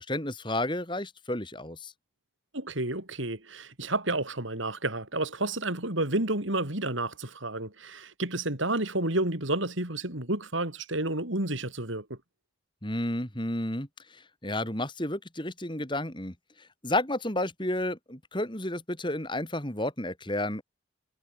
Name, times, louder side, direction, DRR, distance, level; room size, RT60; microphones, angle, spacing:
voice 1, 0.0-1.9 12.8-16.3 16.8-20.6, left 1 dB, 25° left, 4.0 m, -31 dB
voice 2, 2.5-12.2, right 2 dB, 75° right, 5.2 m, -30 dB
head